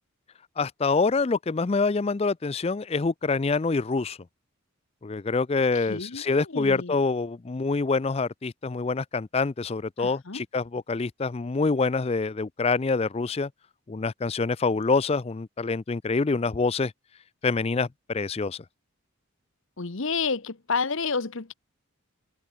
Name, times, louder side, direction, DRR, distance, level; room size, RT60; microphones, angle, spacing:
voice 1, 0.6-4.2 5.0-13.5 13.9-16.9 17.4-18.6, left 4 dB, 25° left, 0.4 m, -26 dB
voice 2, 5.9-6.9 10.0-10.4 19.8-21.5, left 4 dB, 60° left, 1.1 m, -30 dB
head